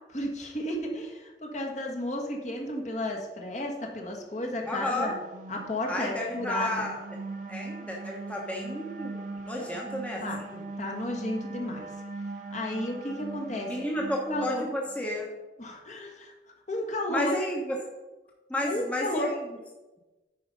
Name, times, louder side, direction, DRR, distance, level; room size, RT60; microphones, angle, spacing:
voice 1, 0.1-5.1 5.5-6.8 9.5-9.7 10.2-10.4 10.8-11.9 12.5-13.7 14.0-14.7 15.6-16.3 16.7-17.3 18.6-19.3, left 1 dB, 40° left, 1 dB, 1.5 m, -33 dB
sound 1, 4.6-15.1, right 3 dB, 45° right, 1.0 m, -41 dB
voice 2, 4.7-5.2 5.9-7.0 7.5-10.6 13.7-15.3 17.1-17.8 18.5-19.3, left 1 dB, 5° left, -2 dB, 1.1 m, -32 dB
10.0 x 4.9 x 5.3 m, 1.1 s
head